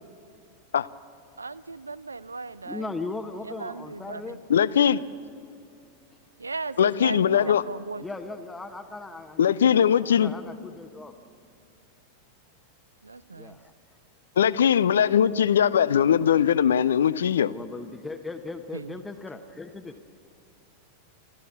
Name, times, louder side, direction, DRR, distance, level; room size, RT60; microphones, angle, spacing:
voice 1, 1.4-2.9 3.4-4.4 6.4-8.0 13.0-13.6 18.7-18.9, right 3 dB, 80° right, 19 dB, 0.4 m, -37 dB
voice 2, 2.6-4.4 7.3-7.6 8.0-11.1 13.3-13.7 17.3-20.0, left 3 dB, 10° left, 6 dB, 1.1 m, -38 dB
voice 3, 4.5-5.0 6.8-7.6 9.4-10.3 14.4-17.5, left 8 dB, 65° left, 18 dB, 0.5 m, -20 dB
27.0 x 13.5 x 7.2 m, 2.5 s
figure-of-eight pair, 90°, 0 cm